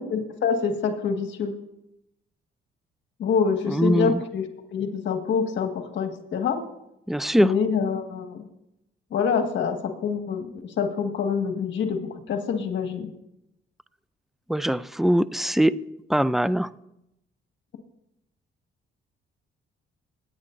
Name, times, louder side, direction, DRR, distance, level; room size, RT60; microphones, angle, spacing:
voice 1, 0.0-1.5 3.2-6.6 7.4-8.5 9.1-13.1, left 6 dB, 65° left, 4 dB, 1.8 m, -26 dB
voice 2, 3.7-4.2 7.1-7.5 14.5-15.8 16.1-16.7, equal, ahead, 16 dB, 0.4 m, -22 dB
22.5 x 9.6 x 2.6 m, 0.84 s
cardioid pair, 90°, 20 cm